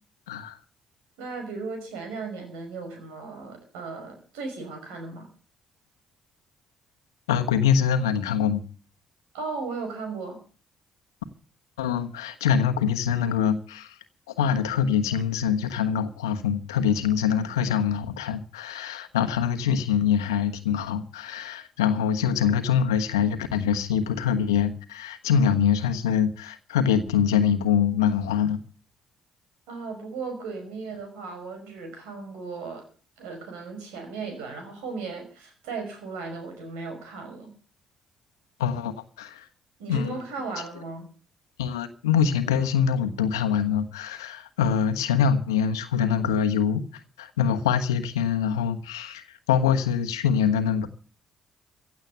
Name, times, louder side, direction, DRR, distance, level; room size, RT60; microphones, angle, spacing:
voice 1, 1.2-5.3 9.3-10.4 29.7-32.8 33.2-37.5 39.8-41.1, right 4 dB, 80° right, 5.6 m, -36 dB
voice 2, 7.3-8.6 11.8-14.0 14.4-28.6 38.6-39.4 39.9-40.1 41.6-46.9 47.2-50.9, left 7 dB, 90° left, 1.2 m, -24 dB
16.0 x 8.2 x 8.0 m
hypercardioid pair, 50°, 2 cm